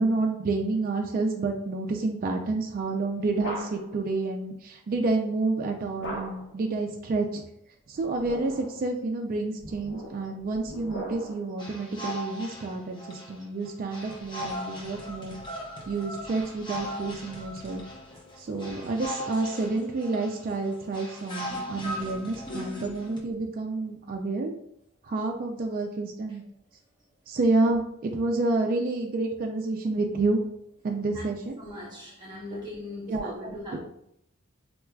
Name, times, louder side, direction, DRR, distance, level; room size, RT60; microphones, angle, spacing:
voice 1, 0.0-7.4 7.9-15.4 15.9-17.8 18.4-24.5 25.0-26.4 27.3-30.4 30.8-31.6 33.1-33.8, right 3 dB, 40° right, 2 dB, 0.3 m, -29 dB
sound 1, 2.8-4.0 6.0-6.6 8.0-8.8 9.6-11.5, equal, 60° left, 0.8 m, -39 dB
sound 2, 11.6-23.2, equal, 20° left, 0.7 m, -38 dB
voice 2, 31.6-33.8, left 1 dB, 20° right, -5 dB, 0.7 m, -39 dB
4.3 x 2.3 x 2.2 m, 0.73 s
head